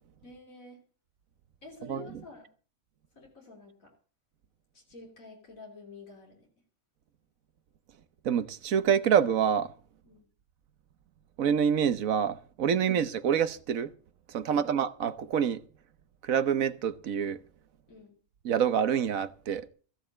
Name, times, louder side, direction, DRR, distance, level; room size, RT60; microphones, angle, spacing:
voice 1, 0.2-0.8 1.6-2.5 3.1-3.9 4.7-6.5 10.0-10.3 12.7-13.0 14.4-14.7 17.9-18.2, left 3 dB, 85° left, 3.7 m, -49 dB
voice 2, 8.2-9.7 11.4-13.9 14.3-15.6 16.2-17.4 18.4-19.7, right 8 dB, 85° right, 1.4 m, -27 dB
15.0 x 7.7 x 7.3 m
omnidirectional pair, 1.4 m